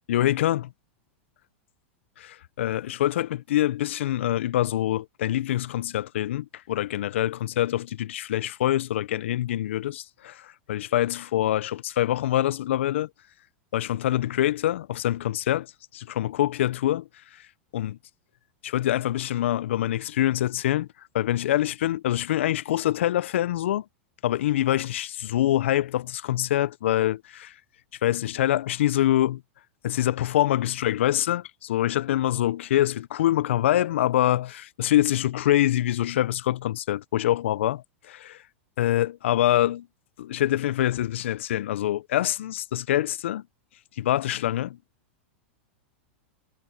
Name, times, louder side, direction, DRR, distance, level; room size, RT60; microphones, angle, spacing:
voice 1, 0.1-0.7 2.2-13.1 13.7-17.4 17.7-17.9 18.6-20.9 21.1-23.8 24.2-27.5 28.0-29.4 29.8-38.4 38.8-39.9 40.2-43.4 44.0-44.8, left 13 dB, 75° left, 0.6 m, -25 dB
hypercardioid pair, 110°, 7 cm